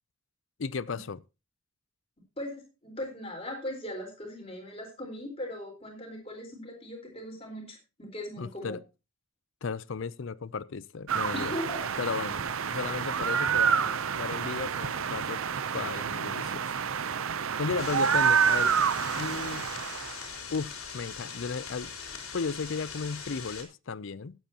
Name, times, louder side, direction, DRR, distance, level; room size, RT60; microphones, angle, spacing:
voice 1, 0.6-1.2 8.4-8.8 9.6-11.5 12.0-15.4 15.7-16.8 17.6-18.7 19.1-19.7 20.5-21.9 22.3-24.3, left 5 dB, 60° left, 0.5 m, -35 dB
voice 2, 2.4-8.8 11.3-11.8, left 1 dB, 25° left, 4.2 m, -39 dB
sound 1, 11.1-20.2, right 7 dB, 70° right, 0.6 m, -28 dB
sound 2, 17.8-23.6, left 6 dB, 80° left, 3.5 m, -41 dB
17.5 x 9.0 x 2.9 m
head